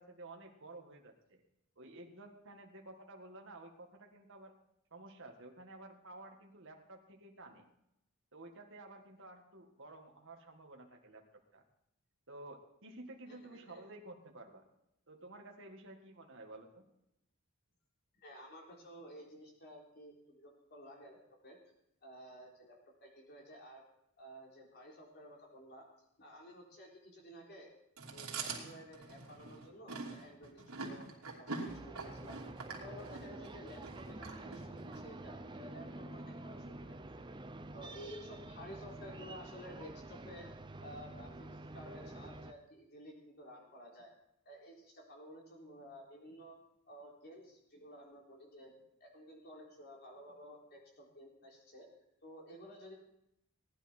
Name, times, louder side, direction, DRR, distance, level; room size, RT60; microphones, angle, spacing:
voice 1, 0.0-1.4 1.8-4.5 4.9-7.7 8.3-11.2 11.5-11.6 12.3-14.6 15.1-16.8, right 2 dB, 55° right, 1 dB, 1.9 m, -52 dB
voice 2, 13.3-13.8 18.2-21.2 21.4-21.6 22.0-23.8 24.2-25.9 26.2-27.7 28.0-32.4 32.8-37.2 37.7-40.5 40.8-41.5 41.7-44.1 44.4-46.6 46.9-51.9 52.2-52.9, equal, 45° left, -1 dB, 3.9 m, -53 dB
Chewing mastication, 28.0-35.0, right 4 dB, 80° right, 2.9 m, -44 dB
sound 1, 31.7-42.5, right 2 dB, 20° right, 0.6 m, -48 dB
18.0 x 11.0 x 4.4 m, 0.79 s
head